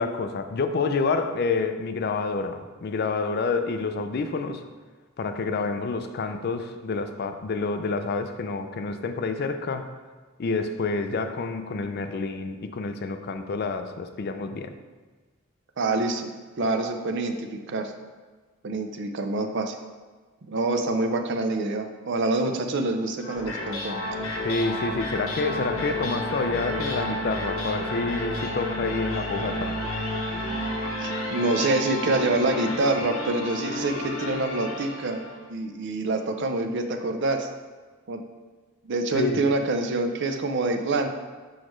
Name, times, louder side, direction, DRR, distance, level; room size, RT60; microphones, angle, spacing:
voice 1, 0.0-4.6 5.2-9.9 10.4-14.7 24.4-29.7 39.1-39.5, left 4 dB, 50° left, 8 dB, 0.4 m, -28 dB
voice 2, 15.8-16.3 16.6-17.9 18.6-19.7 20.5-24.0 31.0-35.2 35.5-37.5 38.1-38.2 38.8-41.1, right 2 dB, 60° right, 6 dB, 0.5 m, -26 dB
sound 1, 23.2-35.4, left 1 dB, 80° left, 0.9 m, -31 dB
6.3 x 4.9 x 3.1 m, 1.4 s
head